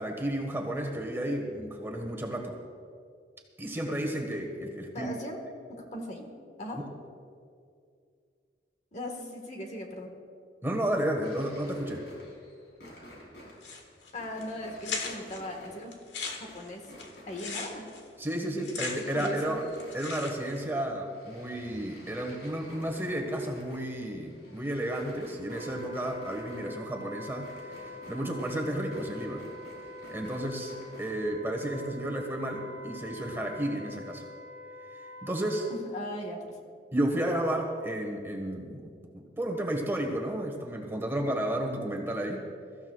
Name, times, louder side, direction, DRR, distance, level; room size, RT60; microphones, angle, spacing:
voice 1, 0.0-2.6 3.6-5.1 6.8-6.9 10.6-12.0 18.2-19.6 19.9-27.5 28.1-29.4 30.1-30.7 31.0-34.2 35.2-35.7 36.9-42.4, right 1 dB, 15° right, 1 dB, 1.5 m, -32 dB
voice 2, 4.9-5.4 5.7-6.3 6.6-6.8 8.9-10.1 14.1-15.9 16.4-16.9 17.3-17.9 18.6-18.7 19.1-19.6 35.7-36.6, left 1 dB, 40° left, 2 dB, 1.6 m, -38 dB
sound 1, 11.2-18.2 18.5-31.1, equal, 65° left, 4.1 m, -51 dB
sound 2, 13.6-14.1 14.4-14.5 14.8-15.4 15.9-19.5 19.7-20.6, left 4 dB, 85° left, 1.7 m, -38 dB
Wind instrument woodwind instrument, 25.4-35.8, left 1 dB, 80° right, 1.5 m, -45 dB
23.0 x 14.5 x 2.4 m, 2.2 s
head